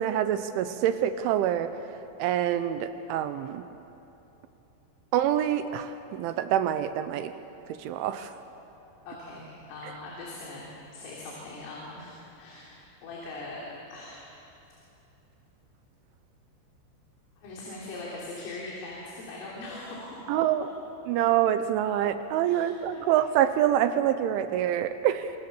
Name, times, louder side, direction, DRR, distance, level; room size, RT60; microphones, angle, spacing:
voice 1, 0.0-1.7 2.2-3.6 5.1-7.3 7.7-8.3 20.3-20.7 21.1-25.3, right 11 dB, 80° right, 10 dB, 3.0 m, -26 dB
voice 2, 9.1-12.8 13.0-13.6 13.9-14.3 17.4-20.2 22.4-23.1, left 2 dB, 80° left, -4 dB, 6.0 m, -41 dB
26.5 x 26.5 x 7.1 m, 2.9 s
omnidirectional pair, 5.8 m